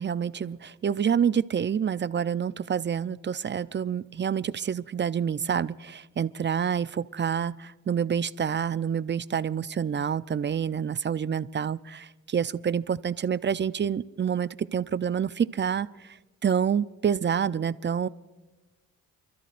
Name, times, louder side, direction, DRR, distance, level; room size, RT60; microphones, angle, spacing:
voice 1, 0.0-16.2 16.4-18.1, right 8 dB, 30° right, 16 dB, 0.5 m, -28 dB
29.0 x 13.0 x 2.5 m, 1.2 s
supercardioid pair, 55°, 35 cm